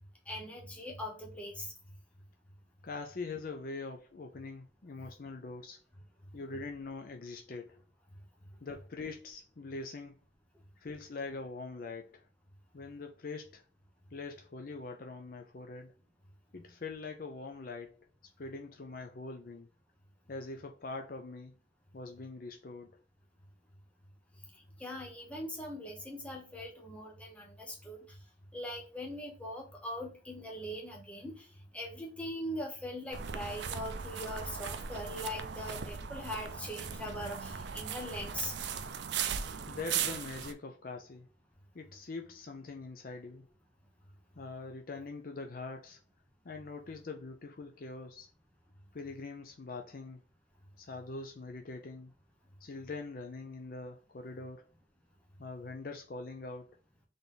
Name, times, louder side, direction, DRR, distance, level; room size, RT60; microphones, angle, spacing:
voice 1, 0.3-1.7 24.8-28.0 28.5-31.5 31.7-38.5, left 1 dB, 5° left, 1.0 m, -41 dB
voice 2, 2.8-5.8 6.3-7.8 8.6-10.2 10.8-12.3 12.7-13.6 14.1-15.9 16.5-18.1 18.4-19.7 20.3-21.5 21.9-23.0 39.7-41.3 41.7-43.5 44.4-46.0 46.4-48.3 48.9-50.2 50.8-52.1 52.6-54.7 55.4-56.8, left 3 dB, 50° left, 0.5 m, -43 dB
sound 1, 33.1-40.5, right 7 dB, 65° right, 0.5 m, -38 dB
3.9 x 3.4 x 4.0 m
head